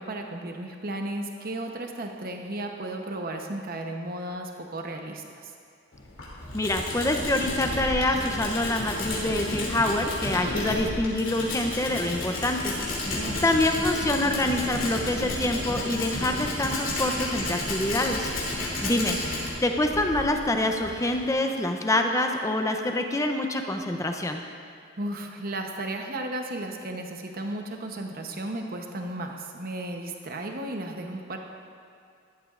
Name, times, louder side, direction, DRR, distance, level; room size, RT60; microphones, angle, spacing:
voice 1, 0.0-5.2 13.1-13.7 25.0-31.4, right 1 dB, 45° right, 3 dB, 0.9 m, -34 dB
Tools, 5.9-21.3, left 2 dB, 70° left, 2.8 m, -32 dB
voice 2, 6.5-12.7 13.0-18.3 18.6-19.2 19.6-24.4, left 1 dB, 15° left, 4 dB, 0.6 m, -26 dB
14.0 x 11.5 x 2.5 m, 2.4 s
head